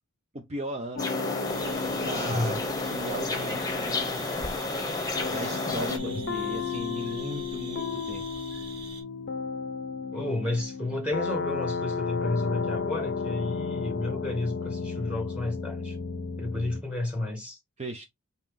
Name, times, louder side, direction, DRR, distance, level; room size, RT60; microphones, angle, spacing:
voice 1, 0.3-1.2 2.0-4.3 5.3-8.2 17.8-18.0, right 1 dB, 30° right, 0.6 m, -37 dB
sound 1, 1.0-16.8, left 5 dB, 55° left, 0.6 m, -34 dB
sound 2, 1.0-6.0, left 2 dB, 15° left, 0.9 m, -31 dB
sound 3, 1.4-9.0, right 3 dB, 50° right, 1.8 m, -44 dB
voice 2, 2.1-2.6 6.0-6.2 10.1-16.0 16.4-17.6, left 2 dB, 5° right, 1.2 m, -31 dB
5.4 x 2.8 x 3.5 m
head